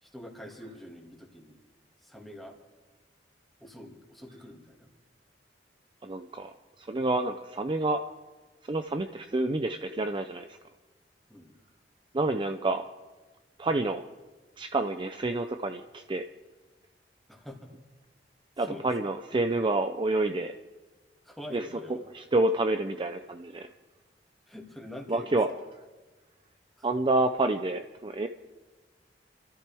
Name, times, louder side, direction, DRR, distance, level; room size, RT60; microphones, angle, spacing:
voice 1, 0.0-1.6 2.0-2.6 3.6-4.9 11.3-11.5 17.3-17.7 18.6-18.9 21.2-22.0 24.5-25.3 26.8-26.9, left 1 dB, ahead, -1 dB, 2.2 m, -45 dB
voice 2, 6.0-6.5 6.8-8.0 8.6-10.6 12.1-12.8 13.6-14.0 14.6-16.2 18.6-20.5 21.5-23.7 25.1-25.5 26.8-28.3, right 2 dB, 30° right, 7 dB, 0.5 m, -28 dB
28.5 x 13.5 x 3.5 m, 1.2 s
head